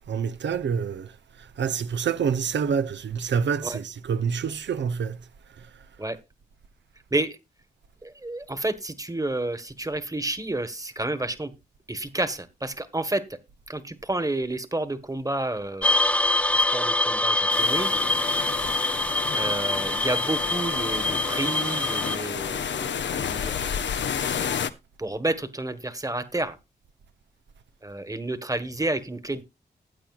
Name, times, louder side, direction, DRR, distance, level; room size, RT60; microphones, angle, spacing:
voice 1, 0.1-1.1 1.6-5.2, right 6 dB, 80° right, 0.8 m, -27 dB
voice 2, 8.0-11.5 11.9-13.4 13.7-16.1 16.5-17.9 18.3-18.6 19.3-23.9 25.0-26.6 27.8-29.4, right 2 dB, 20° right, 1.4 m, -30 dB
sound 1, 15.8-22.2, left 1 dB, 5° left, 0.6 m, -24 dB
sound 2, 17.5-24.7, left 7 dB, 80° left, 0.7 m, -31 dB
15.5 x 8.7 x 2.4 m
cardioid pair, 45°, 18 cm